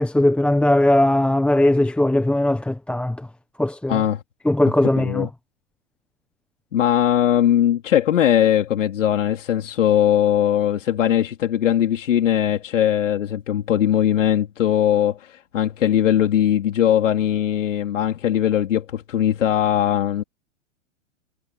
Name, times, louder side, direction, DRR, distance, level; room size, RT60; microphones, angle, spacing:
voice 1, 0.0-3.2 3.6-4.0 4.4-5.3, left 1 dB, 5° left, 1.1 m, -19 dB
voice 2, 3.9-4.2 5.0-5.3 6.7-20.2, left 10 dB, 75° left, 3.8 m, -20 dB
hypercardioid pair, 120°, 38 cm